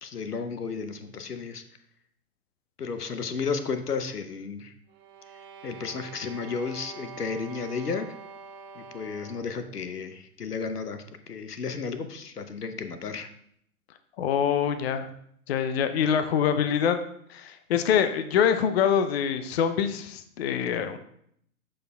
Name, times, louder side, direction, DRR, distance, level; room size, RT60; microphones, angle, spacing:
voice 1, 0.0-1.6 2.8-4.7 5.6-8.2 8.7-13.3, left 5 dB, 85° left, 9 dB, 0.8 m, -33 dB
sound 1, 4.9-9.6, right 5 dB, 35° right, 1.1 m, -45 dB
voice 2, 14.2-15.1 15.5-17.0 17.3-21.0, left 8 dB, 45° left, 10 dB, 0.6 m, -25 dB
12.5 x 4.4 x 2.3 m, 0.69 s
figure-of-eight pair, 115°, 45 cm